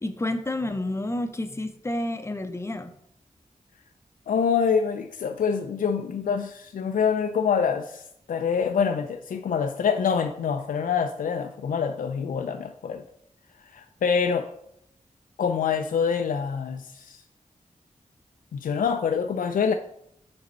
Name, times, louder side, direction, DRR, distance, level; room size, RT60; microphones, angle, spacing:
voice 1, 0.0-2.9, left 1 dB, 20° left, 9 dB, 0.5 m, -30 dB
voice 2, 4.3-13.0 13.7-14.5 15.4-17.2 18.5-19.7, left 6 dB, 80° left, 6 dB, 0.4 m, -26 dB
5.1 x 4.1 x 5.3 m, 0.75 s
wide cardioid pair, 95°, 14 cm